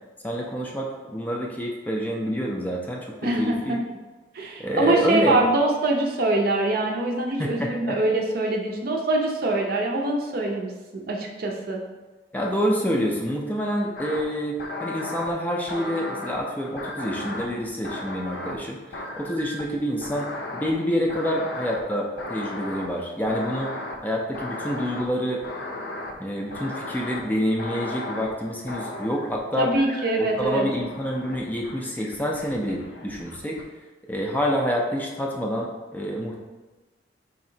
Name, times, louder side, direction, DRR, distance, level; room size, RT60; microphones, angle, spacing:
voice 1, 0.2-3.1 3.4-3.8 4.6-5.4 7.4-8.0 12.3-20.3 20.5-23.7 24.0-25.4 26.2-29.7 30.2-33.6 34.1-36.4, equal, 10° left, -1 dB, 0.3 m, -27 dB
voice 2, 3.2-3.8 4.3-11.8 29.6-30.7, right 2 dB, 55° right, 0 dB, 0.5 m, -24 dB
sound 1, 14.0-14.2 14.6-15.3 15.7-16.4 16.8-18.6 18.9-19.8 20.0-20.7 21.1-21.8 22.2-22.9 23.3-24.0 24.3-25.0 25.4-26.1 26.5-27.2 27.6-28.3 28.7-29.4 29.7-30.4 30.8-31.4 31.6-33.6, left 2 dB, 65° left, 0.5 m, -35 dB
4.1 x 2.8 x 2.6 m, 1.3 s
head